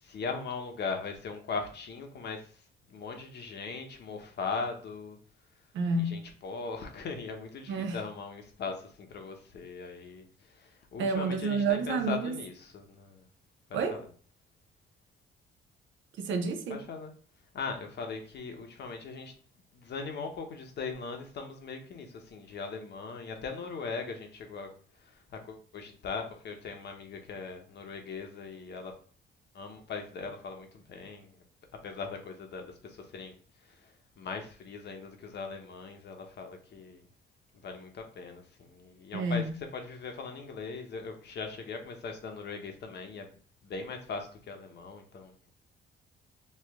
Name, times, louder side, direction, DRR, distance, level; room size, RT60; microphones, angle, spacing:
voice 1, 0.0-5.2 6.0-13.3 13.9-14.0 16.7-17.1 17.5-19.3 19.7-24.7 25.0-29.0 29.5-31.4 31.8-33.3 33.6-37.1 37.6-39.4 39.7-43.4 43.6-45.5, left 4 dB, 60° left, 0.9 m, -40 dB
voice 2, 5.7-6.2 7.7-8.0 11.0-12.4 13.7-14.0 16.2-16.8 39.1-39.6, right 3 dB, 75° right, 0.6 m, -29 dB
3.2 x 2.4 x 3.5 m
cardioid pair, 90°, 20 cm